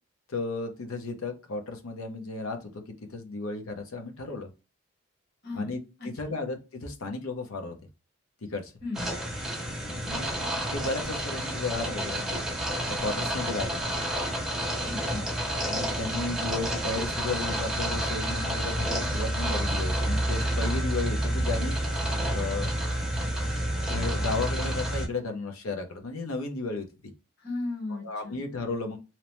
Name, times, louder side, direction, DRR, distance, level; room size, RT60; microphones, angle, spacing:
voice 1, 0.3-2.8 3.1-4.5 5.5-7.8 8.4-8.7 9.9-10.3 10.7-12.4 12.9-13.9 15.7-21.8 22.3-22.8 23.8-26.9 27.9-29.0, left 3 dB, 85° left, 5 dB, 0.6 m, -34 dB
voice 2, 8.8-9.1 14.8-15.4 27.4-28.4, left 2 dB, 50° left, -1 dB, 1.0 m, -35 dB
sound 1, 8.9-25.1, right 1 dB, ahead, 0.6 m, -29 dB
2.9 x 2.0 x 2.9 m, 0.29 s
head